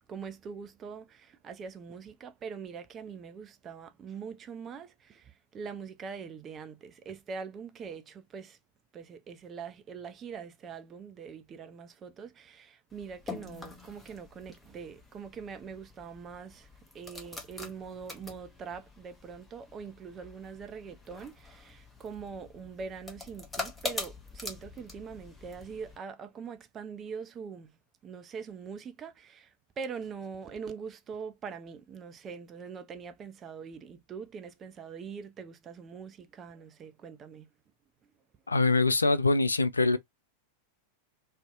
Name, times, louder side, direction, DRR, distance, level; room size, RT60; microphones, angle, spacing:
voice 1, 0.1-8.6 8.9-16.7 16.9-27.7 28.0-37.5, right 6 dB, 25° right, 0.4 m, -43 dB
sound 1, 12.9-26.0, left 3 dB, 10° left, 0.7 m, -44 dB
voice 2, 38.5-40.0, left 3 dB, 80° left, 0.3 m, -24 dB
2.6 x 2.1 x 2.3 m
figure-of-eight pair, 90°, 0 cm